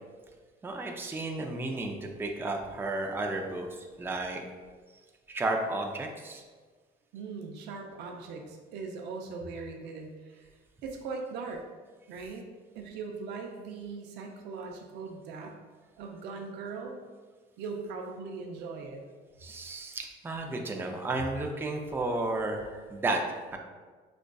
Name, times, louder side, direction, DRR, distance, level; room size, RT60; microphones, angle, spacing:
voice 1, 0.6-4.4 5.3-6.4 19.4-23.6, right 2 dB, 15° right, 2 dB, 0.4 m, -33 dB
voice 2, 7.1-10.5 10.8-11.6 12.1-12.5 12.7-15.6 16.0-16.9 17.6-19.0, right 4 dB, 85° right, 2 dB, 0.5 m, -40 dB
5.1 x 2.4 x 2.2 m, 1.4 s
cardioid pair, 110°, 17 cm